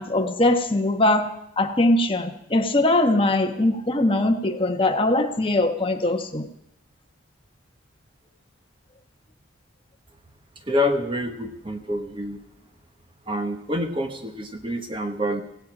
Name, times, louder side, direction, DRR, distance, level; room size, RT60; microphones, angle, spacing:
voice 1, 0.0-6.5, left 1 dB, 25° left, 5 dB, 1.1 m, -21 dB
voice 2, 10.7-12.4 13.3-15.4, left 1 dB, 25° right, 6 dB, 1.0 m, -27 dB
17.0 x 16.0 x 5.0 m, 0.75 s
head